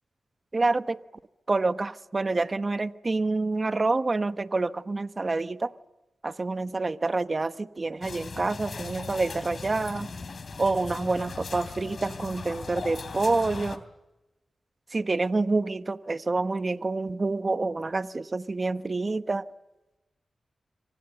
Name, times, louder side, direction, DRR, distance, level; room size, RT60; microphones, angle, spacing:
voice 1, 0.5-1.0 1.5-5.7 6.2-10.1 10.6-13.8 14.9-19.4, right 3 dB, 45° right, 1.0 m, -27 dB
sound 1, 8.0-13.8, left 4 dB, 65° left, 2.9 m, -38 dB
27.0 x 25.0 x 7.9 m
cardioid pair, 45°, 0 cm